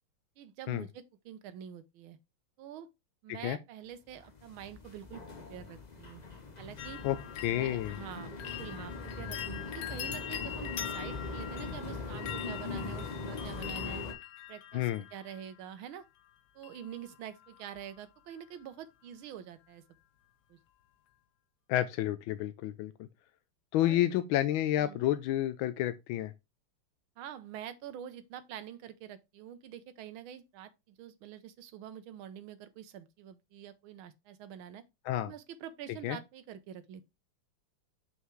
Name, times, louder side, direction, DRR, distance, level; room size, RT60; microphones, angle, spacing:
voice 1, 0.4-2.2 2.6-2.9 3.2-6.2 6.6-7.0 7.5-9.4 9.7-14.0 14.5-16.0 16.5-19.8 20.5-20.6 23.8-24.1 24.8-25.1 27.2-34.8 35.2-37.1, right 10 dB, 75° right, 1.6 m, -46 dB
sound 1, 4.1-14.1, left 3 dB, 35° left, 0.6 m, -41 dB
sound 2, 6.8-15.7 16.6-17.2 17.4-18.0 18.3-18.4, left 11 dB, 60° left, 1.2 m, -43 dB
voice 2, 7.4-8.0 14.7-15.0 21.7-23.1 23.7-26.3 35.0-35.3 36.0-36.2, left 13 dB, 75° left, 1.3 m, -30 dB
5.8 x 5.7 x 3.1 m
omnidirectional pair, 2.3 m